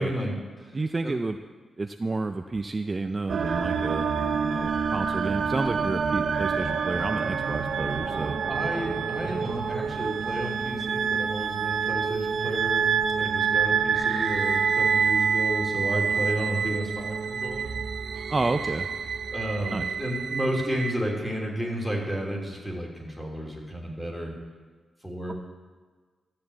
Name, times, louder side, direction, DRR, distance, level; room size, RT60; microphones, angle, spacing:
voice 1, 0.0-0.7 1.0-1.2 8.5-12.8 13.2-17.8 19.3-24.4 25.0-25.3, equal, 5° left, -1 dB, 3.1 m, -32 dB
voice 2, 0.7-1.4 1.8-4.1 4.4-8.4 18.3-18.9 19.7-19.9, right 3 dB, 25° right, 7 dB, 0.5 m, -30 dB
sound 1, 3.3-20.9, right 6 dB, 70° right, 0.9 m, -27 dB
13.0 x 7.7 x 8.4 m, 1.5 s
wide cardioid pair, 110°, 0 cm